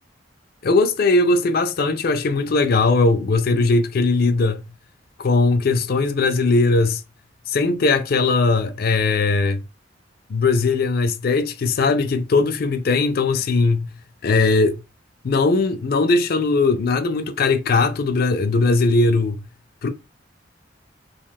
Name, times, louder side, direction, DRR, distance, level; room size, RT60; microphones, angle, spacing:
voice 1, 0.6-4.6 5.2-7.0 7.5-9.6 10.3-13.9 14.2-14.8 15.2-19.4 19.8-19.9, left 3 dB, 55° left, 0.4 m, -19 dB
2.4 x 2.3 x 3.4 m
head